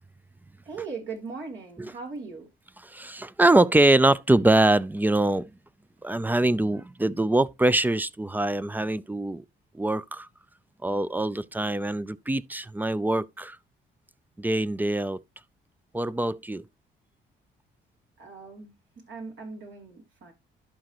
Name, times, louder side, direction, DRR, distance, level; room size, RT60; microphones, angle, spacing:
voice 1, 0.6-2.5 18.2-20.3, right 4 dB, 70° right, 3.4 m, -39 dB
voice 2, 2.9-5.5 6.0-9.4 9.7-10.3 10.8-13.6 14.4-15.2 15.9-16.6, right 2 dB, 10° right, 0.4 m, -23 dB
11.5 x 5.1 x 3.0 m
cardioid pair, 90°, 20 cm